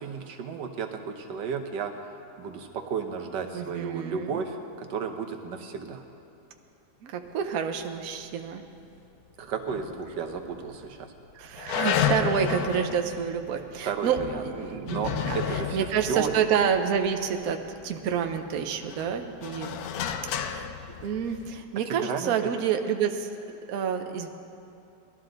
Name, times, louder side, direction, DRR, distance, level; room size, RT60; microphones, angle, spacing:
voice 1, 0.0-2.1 2.4-6.0 9.4-11.1 13.8-16.5 21.9-22.3, right 6 dB, 85° right, 5 dB, 1.6 m, -33 dB
voice 2, 3.5-4.4 7.0-8.6 11.3-19.8 20.4-20.7 21.0-23.3 23.7-24.3, right 7 dB, 60° right, 5 dB, 1.1 m, -28 dB
sound 1, 9.7-10.5 10.8-10.9 11.6-17.7 18.2-21.6, left 8 dB, 70° left, 1.1 m, -32 dB
19.5 x 13.0 x 3.9 m, 2.8 s
omnidirectional pair, 1.9 m